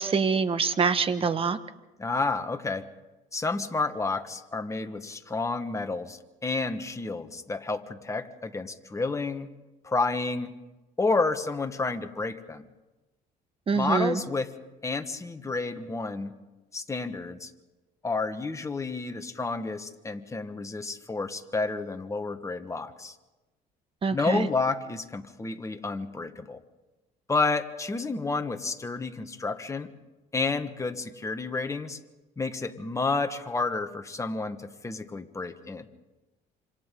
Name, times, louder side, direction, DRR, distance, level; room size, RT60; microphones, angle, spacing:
voice 1, 0.0-1.6 13.7-14.2 24.0-24.5, right 5 dB, 35° right, 11 dB, 1.2 m, -25 dB
voice 2, 2.0-2.9 3.3-9.5 9.8-10.5 11.0-12.7 13.7-14.5 14.8-16.3 16.7-17.5 18.0-23.1 24.1-26.6 27.3-29.9 30.3-32.0 32.4-35.8, left 3 dB, 20° left, 7 dB, 1.5 m, -30 dB
27.5 x 26.5 x 3.8 m, 1.1 s
cardioid pair, 110°, 17 cm